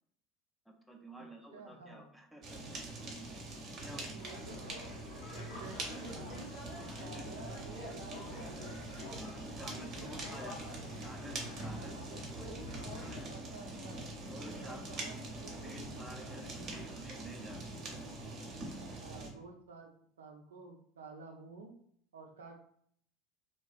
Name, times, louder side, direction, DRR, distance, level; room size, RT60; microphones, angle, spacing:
voice 1, 0.9-2.8 3.8-4.4 5.3-5.4 7.0-7.2 9.1-12.4 13.0-13.3 14.3-15.1 15.6-17.6, equal, 5° left, 2 dB, 0.5 m, -51 dB
voice 2, 1.5-2.1 3.8-5.0 5.3-6.6 7.0-9.0 9.5-10.1 10.8-11.0 11.8-14.2 14.6-15.8 16.5-17.2 19.0-21.8 22.1-22.6, right 4 dB, 80° right, 3 dB, 0.4 m, -52 dB
Fire, 2.4-19.3, right 2 dB, 45° right, 0.7 m, -44 dB
sound 1, 4.2-13.2, left 2 dB, 70° left, 0.9 m, -48 dB
2.3 x 2.2 x 2.4 m, 0.63 s
figure-of-eight pair, 75°, 0 cm